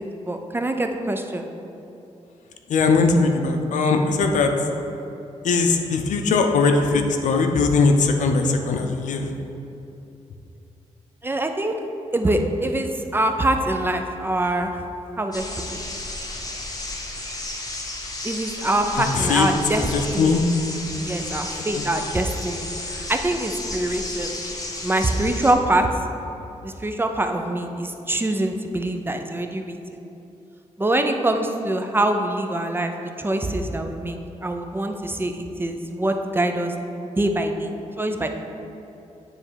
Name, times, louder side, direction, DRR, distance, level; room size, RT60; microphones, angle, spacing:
voice 1, 0.0-1.5 11.2-11.7 12.1-14.7 15.2-15.4 15.7-15.8 18.2-19.9 20.1-20.4 20.9-24.4 24.8-25.9 26.6-29.7 30.8-32.9 33.2-36.7 37.0-37.7 38.0-38.3, right 1 dB, 15° right, 5 dB, 0.5 m, -24 dB
voice 2, 2.7-4.5 5.4-9.3 19.0-19.5 19.8-20.5 21.6-21.8, left 4 dB, 85° left, 5 dB, 0.6 m, -20 dB
sound 1, 15.3-25.5, left 2 dB, 30° left, 0.9 m, -33 dB
9.6 x 3.3 x 4.7 m, 2.8 s
cardioid pair, 110°, 12 cm